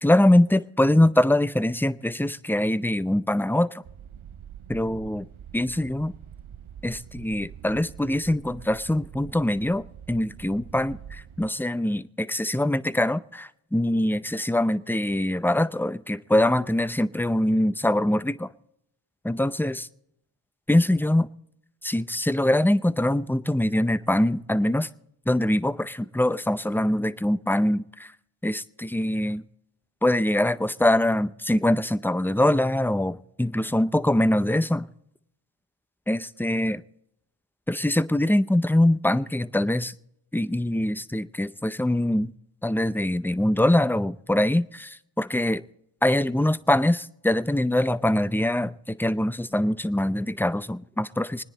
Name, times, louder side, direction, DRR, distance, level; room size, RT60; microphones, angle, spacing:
voice 1, 0.0-3.8 4.7-5.3 5.5-6.1 6.8-18.5 19.2-19.9 20.7-21.3 21.8-24.9 25.3-28.1 28.4-29.4 30.0-34.9 36.1-36.8 37.7-39.9 40.3-42.3 42.6-45.6 46.0-51.4, left 1 dB, 5° left, 0.5 m, -23 dB
sound 1, 3.8-11.5, right 9 dB, 85° right, 0.7 m, -45 dB
25.0 x 10.0 x 4.0 m
wide cardioid pair, 45°, 48 cm